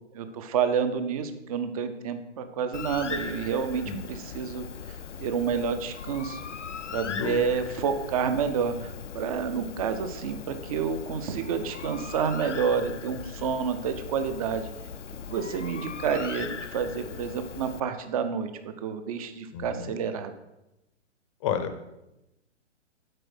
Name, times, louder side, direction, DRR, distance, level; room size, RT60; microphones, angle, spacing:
voice 1, 0.1-6.4 6.9-14.7 15.3-20.3, right 6 dB, 30° right, 9 dB, 0.6 m, -29 dB
Bird, 2.7-17.8, left 6 dB, 85° left, 0.5 m, -39 dB
voice 2, 7.0-7.4 19.5-19.9 21.4-21.7, left 7 dB, 25° left, 9 dB, 0.6 m, -31 dB
7.7 x 4.7 x 6.0 m, 0.93 s
figure-of-eight pair, 120°, 35 cm